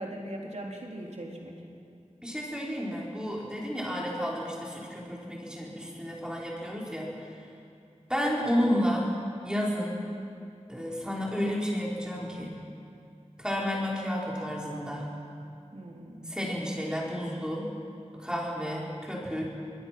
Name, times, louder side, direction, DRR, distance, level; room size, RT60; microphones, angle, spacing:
voice 1, 0.0-1.6 15.7-16.4, right 1 dB, 65° right, -1 dB, 3.5 m, -40 dB
voice 2, 2.2-7.3 8.1-9.1 9.4-10.1 10.7-12.6 13.4-15.1 16.3-17.7 18.1-19.5, equal, 5° right, -4 dB, 5.0 m, -31 dB
24.5 x 20.0 x 6.1 m, 2.5 s
wide cardioid pair, 55°, 12 cm